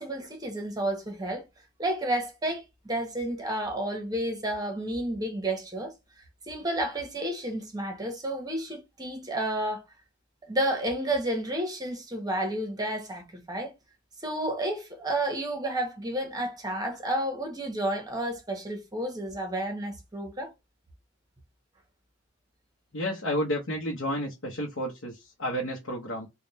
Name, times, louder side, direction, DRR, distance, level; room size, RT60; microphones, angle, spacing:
voice 1, 0.0-1.4 1.8-5.9 6.5-9.8 10.5-13.7 14.2-20.5, right 1 dB, 20° right, 1.1 m, -31 dB
voice 2, 22.9-26.3, equal, 65° left, 0.9 m, -31 dB
3.5 x 2.3 x 4.1 m
head